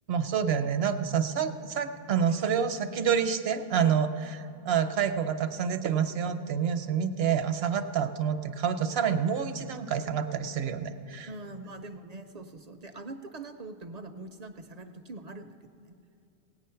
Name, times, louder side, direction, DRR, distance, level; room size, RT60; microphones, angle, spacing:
voice 1, 0.1-11.3, right 7 dB, 75° right, 10 dB, 0.9 m, -28 dB
voice 2, 11.3-15.9, right 2 dB, 50° right, 8 dB, 0.5 m, -43 dB
17.5 x 9.1 x 5.7 m, 2.7 s
omnidirectional pair, 1.0 m